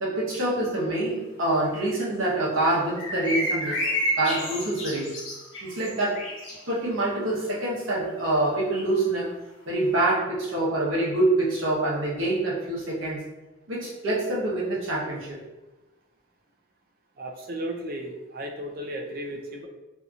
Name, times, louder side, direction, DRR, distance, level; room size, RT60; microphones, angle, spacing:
voice 1, 0.0-5.1 5.6-6.1 6.7-9.3 9.7-13.2 13.7-15.4, right 2 dB, 70° right, -5 dB, 0.9 m, -26 dB
sound 1, 2.9-6.6, equal, 60° left, 0.9 m, -30 dB
voice 2, 17.2-19.7, right 1 dB, 45° right, 2 dB, 0.4 m, -34 dB
2.7 x 2.6 x 2.4 m, 1.1 s
head